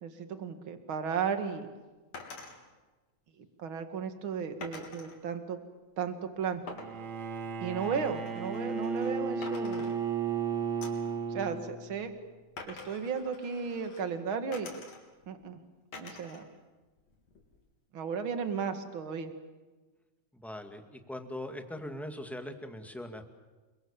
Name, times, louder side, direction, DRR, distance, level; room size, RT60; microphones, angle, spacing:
voice 1, 0.0-1.7 3.6-5.6 6.0-6.6 7.6-10.0 11.3-12.1 12.6-14.7 15.3-15.6 16.0-16.4 17.9-19.3, right 6 dB, 45° right, 8 dB, 2.7 m, -34 dB
sound 1, 2.1-2.6 4.6-5.2 6.7-9.2 9.4-10.4 10.8-11.1 12.6-14.1 14.5-15.3 15.9-16.5 16.8-17.6, left 3 dB, 60° left, 4.7 m, -47 dB
Bowed string instrument, 6.7-12.0, right 5 dB, 70° right, 3.2 m, -34 dB
voice 2, 20.3-23.3, left 1 dB, ahead, 5 dB, 1.7 m, -41 dB
30.0 x 24.0 x 7.3 m, 1.2 s
omnidirectional pair, 3.3 m